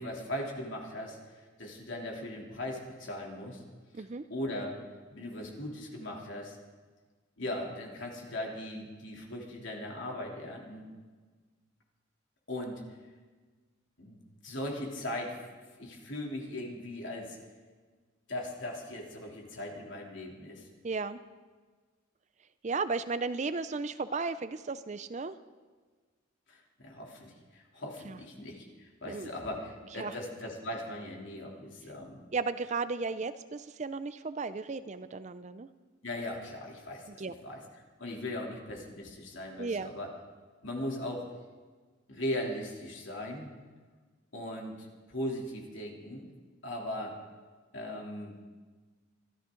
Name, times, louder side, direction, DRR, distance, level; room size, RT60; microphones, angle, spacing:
voice 1, 0.0-3.6 4.0-4.7 5.1-6.6 7.4-10.9 12.5-12.8 14.0-14.2 14.4-15.4 15.8-17.4 18.3-20.7 26.5-32.2 36.0-37.6 38.0-40.1 40.6-41.3 42.1-43.5 44.3-46.2 46.6-47.2 47.7-48.4, left 1 dB, 60° left, -1 dB, 3.1 m, -39 dB
voice 2, 3.9-4.2 20.8-21.2 22.6-25.4 28.0-28.2 29.1-29.3 30.0-30.2 32.3-35.7 37.1-37.3 39.6-39.9, right 4 dB, 35° right, 13 dB, 0.4 m, -34 dB
25.0 x 13.0 x 3.8 m, 1.4 s
head